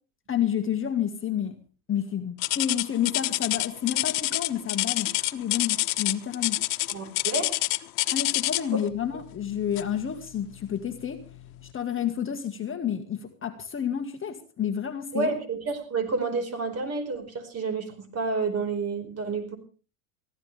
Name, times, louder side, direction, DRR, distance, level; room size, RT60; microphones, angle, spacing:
voice 1, 0.3-1.6 1.9-6.6 8.1-11.2 11.7-15.3, left 9 dB, 25° left, 6 dB, 1.7 m, -30 dB
sound 1, 2.4-8.8 9.7-10.0 10.6-10.7 11.3-11.4, left 20 dB, 70° left, 1.2 m, -27 dB
voice 2, 6.9-7.5 15.1-19.6, right 4 dB, 30° right, 8 dB, 4.8 m, -29 dB
23.0 x 15.5 x 3.4 m, 0.36 s
supercardioid pair, 120°, 47 cm